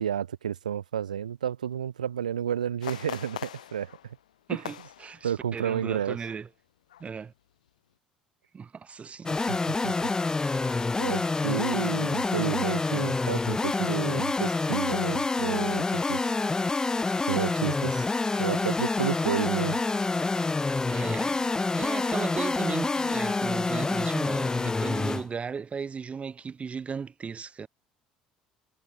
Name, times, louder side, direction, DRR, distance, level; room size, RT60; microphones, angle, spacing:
voice 1, 0.0-3.9 5.2-6.2 9.3-9.9 10.6-10.7 11.0-16.3 17.3-18.1 18.4-19.8, right 9 dB, 85° right, 0.4 m, -31 dB
sound 1, 2.8-5.9 6.2-6.4 6.9-7.3 7.7-7.8, left 11 dB, 80° left, 0.5 m, -42 dB
voice 2, 4.5-6.5 7.0-7.3 8.5-9.4 20.9-27.7, right 6 dB, 30° right, 1.4 m, -36 dB
sound 2, 9.3-25.3, left 3 dB, 15° left, 0.7 m, -27 dB
figure-of-eight pair, 60°, 4 cm